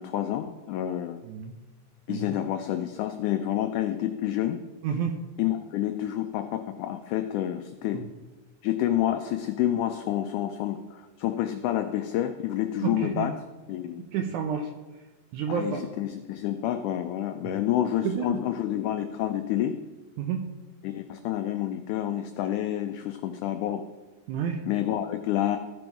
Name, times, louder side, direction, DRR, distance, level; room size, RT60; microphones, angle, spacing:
voice 1, 0.0-1.2 2.1-4.6 5.4-8.0 8.6-13.3 13.7-14.1 15.5-19.8 20.8-23.8 24.7-25.6, left 12 dB, 90° left, 7 dB, 1.7 m, -28 dB
voice 2, 4.8-5.1 7.9-8.0 12.8-13.3 14.1-14.7 15.3-15.8 18.0-18.4 20.2-20.4 24.3-24.6, right 7 dB, 80° right, 5 dB, 1.8 m, -29 dB
14.5 x 5.4 x 4.5 m, 1.2 s
omnidirectional pair, 4.1 m